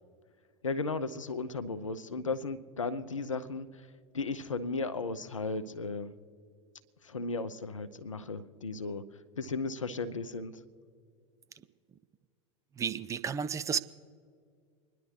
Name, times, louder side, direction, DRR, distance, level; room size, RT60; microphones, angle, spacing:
voice 1, 0.6-3.9 4.1-6.1 7.0-9.0 9.4-10.6, left 3 dB, 80° left, 12 dB, 0.6 m, -35 dB
voice 2, 12.8-13.8, right 7 dB, 20° right, 13 dB, 0.4 m, -32 dB
26.0 x 10.5 x 3.2 m, 2.1 s
figure-of-eight pair, 80°, 16 cm